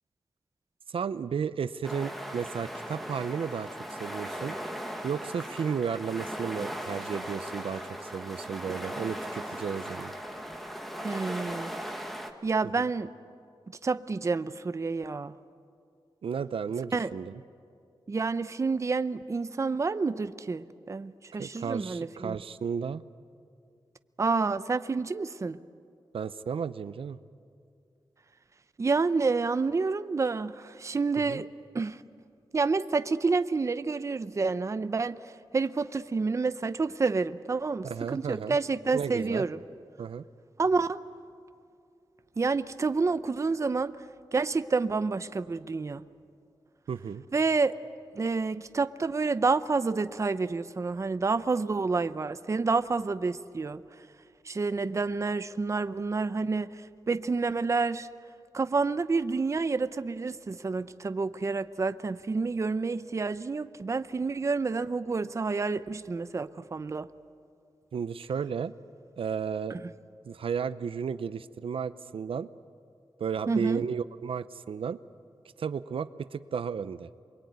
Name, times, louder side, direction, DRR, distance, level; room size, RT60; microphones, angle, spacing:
voice 1, 0.9-4.6 5.0-10.1 16.2-17.4 21.4-23.0 26.1-27.2 31.3-31.4 37.8-38.6 38.9-39.4 40.0-40.2 46.9-47.2 67.9-68.7 69.2-69.8 70.3-72.5 73.2-75.0 75.6-77.1, right 6 dB, 90° right, 13 dB, 0.7 m, -33 dB
sound 1, 1.8-12.3, equal, ahead, 1.7 m, -38 dB
voice 2, 11.0-11.7 12.4-13.1 13.8-15.3 16.9-17.1 18.1-22.4 24.2-25.6 28.8-31.5 31.7-32.0 32.5-39.6 40.6-41.0 42.4-44.0 44.3-46.0 47.3-47.7 48.1-53.8 54.4-58.1 58.5-67.1 69.7-69.9 73.5-73.8, right 4 dB, 35° right, 12 dB, 0.6 m, -29 dB
28.0 x 22.0 x 9.4 m, 2.4 s
wide cardioid pair, 155°, 9 cm